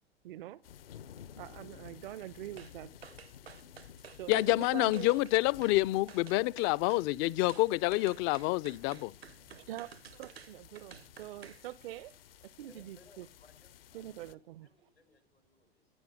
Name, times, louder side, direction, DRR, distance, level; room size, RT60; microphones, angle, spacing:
voice 1, 0.2-0.6 1.4-3.0 4.2-5.1 9.5-12.2 12.6-13.3 13.9-14.7, right 14 dB, 60° right, 0.8 m, -44 dB
sound 1, 0.6-14.3, left 10 dB, 70° left, 1.2 m, -54 dB
sound 2, 2.6-2.8 3.0-5.8 6.1-7.1 7.5-11.6 12.0-12.1, right 8 dB, 80° right, 1.1 m, -52 dB
voice 2, 4.3-9.1, left 20 dB, 40° left, 0.7 m, -28 dB
voice 3, 12.7-14.4 14.6-15.9, left 3 dB, 85° left, 6.2 m, -63 dB
18.0 x 11.0 x 6.4 m
figure-of-eight pair, 85°, 30 cm